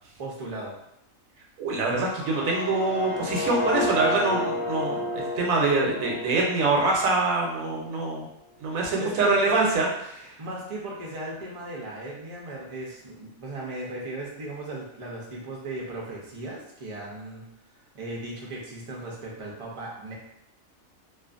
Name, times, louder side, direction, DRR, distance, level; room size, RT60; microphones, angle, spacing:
voice 1, 0.2-0.7 9.0-9.8 10.4-17.5 17.9-20.1, right 2 dB, 45° right, -4 dB, 0.4 m, -36 dB
voice 2, 1.6-8.3 8.6-9.9, right 3 dB, 85° right, -1 dB, 1.1 m, -24 dB
sound 1, 2.0-7.9, left 2 dB, 75° left, 0.9 m, -32 dB
2.5 x 2.4 x 2.4 m, 0.81 s
omnidirectional pair, 1.4 m